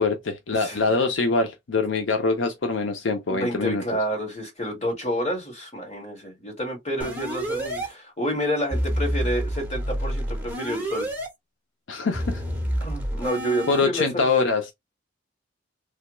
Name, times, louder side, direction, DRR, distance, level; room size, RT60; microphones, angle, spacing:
voice 1, 0.0-3.8 11.9-12.4 13.7-14.7, left 3 dB, 80° left, 0.6 m, -24 dB
voice 2, 3.3-11.1 12.8-14.5, equal, 35° left, 1.6 m, -29 dB
sound 1, 7.0-7.9 8.7-11.3 12.1-13.8, equal, 10° right, 1.1 m, -28 dB
3.4 x 2.2 x 3.0 m
head